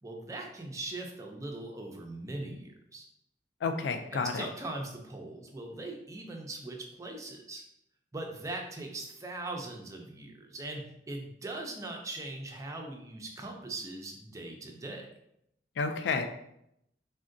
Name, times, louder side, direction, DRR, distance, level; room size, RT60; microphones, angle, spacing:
voice 1, 0.0-3.0 4.1-7.6 8.1-15.1, right 2 dB, 20° right, 1 dB, 0.4 m, -40 dB
voice 2, 3.6-4.5 15.8-16.3, left 4 dB, 80° left, 7 dB, 0.3 m, -30 dB
3.6 x 2.1 x 2.5 m, 0.78 s
head